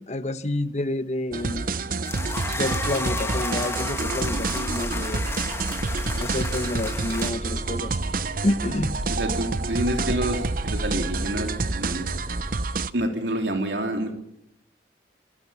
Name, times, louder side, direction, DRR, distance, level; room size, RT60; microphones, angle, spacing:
voice 1, 0.0-1.7 2.5-5.2 6.2-8.0 8.4-9.0, left 1 dB, 40° left, 11 dB, 1.1 m, -29 dB
sound 1, 1.3-12.9, right 3 dB, 50° right, 0.8 m, -29 dB
sound 2, 2.0-7.3, left 3 dB, 15° left, 1.6 m, -32 dB
sound 3, 3.9-12.7, equal, ahead, 3.2 m, -34 dB
voice 2, 9.1-12.1 12.9-14.1, right 1 dB, 75° right, 4 dB, 3.5 m, -28 dB
26.0 x 19.0 x 7.1 m, 0.75 s
head